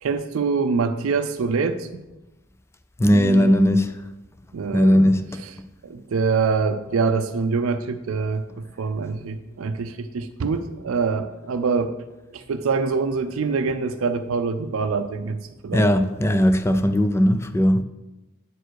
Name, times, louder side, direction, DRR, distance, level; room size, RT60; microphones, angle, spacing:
voice 1, 0.0-2.0 3.1-3.6 4.5-5.1 5.4-5.5 5.8-11.9 12.3-15.9, right 4 dB, 80° right, 0.4 m, -25 dB
voice 2, 3.0-3.9 4.7-5.4 15.7-17.8, equal, 15° left, 0.4 m, -18 dB
8.8 x 4.5 x 4.6 m
head